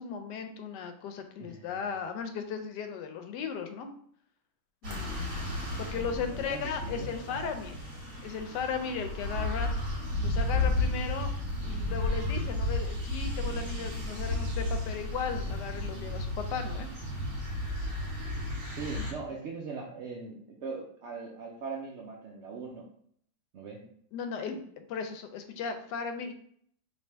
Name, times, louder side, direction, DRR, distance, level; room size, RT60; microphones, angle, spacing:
voice 1, 0.0-3.9 4.8-5.4 5.8-7.8 8.2-9.7 10.2-11.3 11.6-16.9 18.9-19.1 24.1-26.3, left 6 dB, 80° left, 7 dB, 1.2 m, -36 dB
voice 2, 1.4-1.7 6.3-7.3 15.9-16.1 18.7-22.9 23.5-23.8, right 4 dB, 80° right, -1 dB, 0.6 m, -41 dB
sound 1, 4.8-19.1, left 2 dB, 60° right, 1.6 m, -33 dB
3.4 x 2.7 x 4.4 m, 0.63 s
omnidirectional pair, 1.9 m